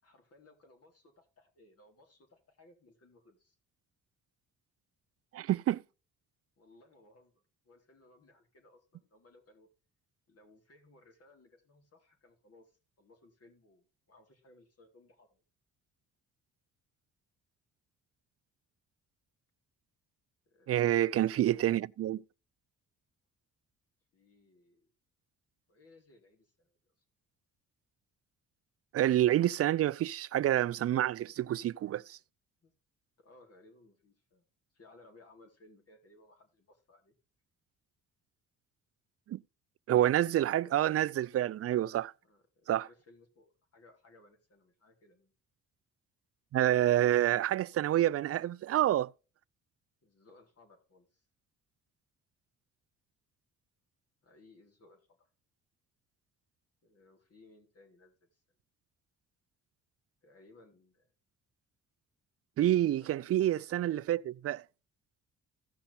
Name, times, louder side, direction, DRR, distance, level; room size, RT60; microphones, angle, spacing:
voice 1, 0.0-3.6 6.6-9.7 10.3-15.4 20.5-21.3 24.1-24.9 25.7-26.8 32.6-32.7 33.2-34.5 34.7-37.2 42.2-45.3 50.0-51.3 54.2-55.3 56.8-58.4 60.2-61.1 63.0-63.3, left 2 dB, 50° left, 3.8 m, -62 dB
voice 2, 5.3-5.8 20.7-22.2 28.9-32.2 39.3-39.4 39.9-42.1 42.7-42.9 46.5-49.1 62.6-64.6, right 12 dB, 50° right, 0.4 m, -28 dB
15.5 x 5.9 x 3.4 m
cardioid pair, 90°, 30 cm